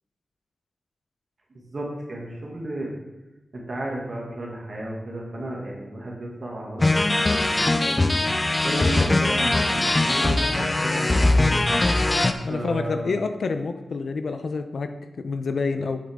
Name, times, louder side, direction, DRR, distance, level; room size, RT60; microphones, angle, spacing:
voice 1, 1.5-2.9 3.5-7.4 7.8-8.2 8.6-11.8 12.4-13.2, right 1 dB, 40° right, -2 dB, 2.1 m, -33 dB
sound 1, 6.8-12.3, left 2 dB, 20° left, 0.5 m, -21 dB
voice 2, 12.4-14.9 15.2-16.0, left 4 dB, 65° left, 8 dB, 0.6 m, -27 dB
8.6 x 7.7 x 3.6 m, 1.0 s
wide cardioid pair, 170°, 0 cm